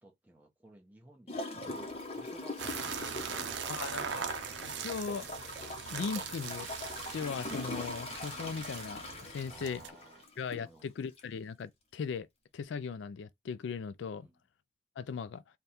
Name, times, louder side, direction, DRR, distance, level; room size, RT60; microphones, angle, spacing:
voice 1, 0.0-1.4 1.7-2.8 3.2-3.8 9.5-10.3 10.6-10.9 14.2-14.3, right 1 dB, 10° right, 1.0 m, -56 dB
Gurgling / Toilet flush, 1.3-10.7 11.2-11.3, left 2 dB, 35° left, 0.8 m, -42 dB
sound 1, 2.6-9.9, right 7 dB, 85° right, 0.6 m, -41 dB
sound 2, 3.0-10.2, right 3 dB, 60° right, 1.0 m, -59 dB
voice 2, 3.7-4.3 4.7-5.3 5.9-6.7 7.1-9.8 10.4-12.3 12.5-14.3 15.0-15.4, left 5 dB, 85° left, 0.3 m, -38 dB
3.4 x 2.3 x 4.2 m
head